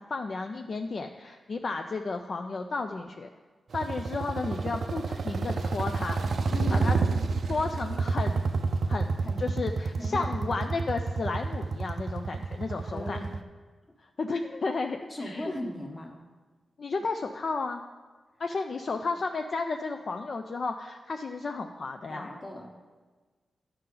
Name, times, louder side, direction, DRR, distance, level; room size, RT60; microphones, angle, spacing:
voice 1, 0.0-3.3 3.7-6.2 6.7-6.9 7.5-8.5 8.9-13.2 14.0-15.5 16.8-17.8 18.4-22.3, left 3 dB, 45° left, 5 dB, 0.3 m, -33 dB
sound 1, 3.7-13.4, right 4 dB, 55° right, 0.4 m, -29 dB
voice 2, 6.4-6.8 9.2-9.4 10.0-10.6 12.8-13.3 15.0-16.1 22.1-22.7, left 1 dB, 20° left, 1 dB, 1.1 m, -38 dB
12.5 x 5.6 x 3.8 m, 1.4 s
wide cardioid pair, 165°, 0 cm